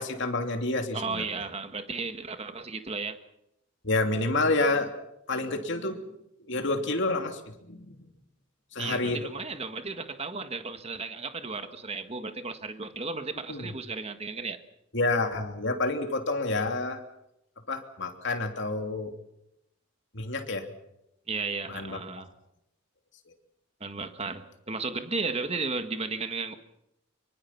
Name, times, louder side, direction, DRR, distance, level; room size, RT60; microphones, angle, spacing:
voice 1, 0.0-1.3 3.8-4.9 5.3-6.0 6.5-7.9 8.7-9.2 13.5-13.7 14.9-17.0 17.7-19.1 20.1-20.7 21.7-22.0, left 2 dB, 60° left, 5 dB, 3.0 m, -28 dB
voice 2, 0.9-3.2 8.8-14.6 21.3-22.3 23.8-26.5, right 4 dB, 30° right, 8 dB, 1.7 m, -34 dB
25.0 x 23.5 x 5.9 m, 0.82 s
head